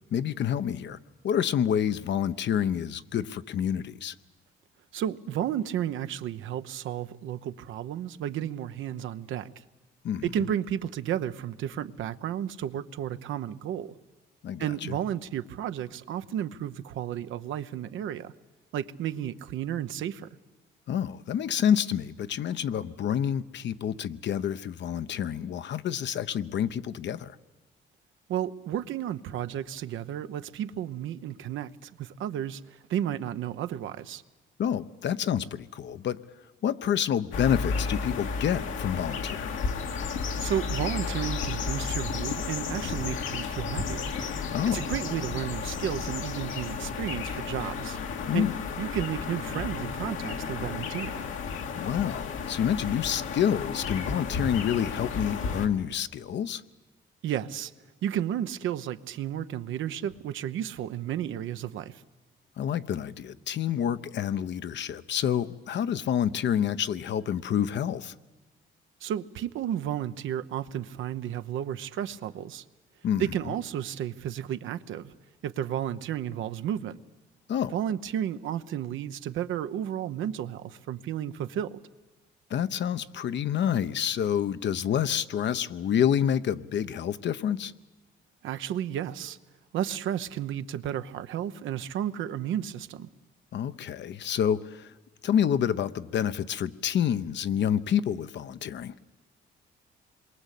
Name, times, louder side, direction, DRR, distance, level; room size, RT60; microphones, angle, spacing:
voice 1, 0.1-1.0 1.2-4.1 10.0-10.2 14.4-14.9 20.9-27.3 34.6-36.2 36.6-39.6 44.5-44.8 48.3-48.5 51.8-56.6 62.6-68.1 73.0-73.3 77.5-77.7 82.5-87.7 93.5-94.9 95.2-98.9, left 9 dB, 65° left, 0.9 m, -28 dB
voice 2, 4.9-9.5 10.2-13.9 14.6-18.3 18.7-20.3 28.3-34.2 40.4-44.1 44.7-48.0 48.3-48.5 48.8-51.2 57.2-57.7 58.0-62.0 69.0-72.6 73.2-75.1 75.4-77.0 77.7-81.8 88.4-89.4 89.7-93.1, right 10 dB, 80° right, 0.9 m, -32 dB
sound 1, 37.3-55.7, left 5 dB, 85° left, 2.1 m, -33 dB
27.0 x 22.5 x 8.4 m
cardioid pair, 90°, 20 cm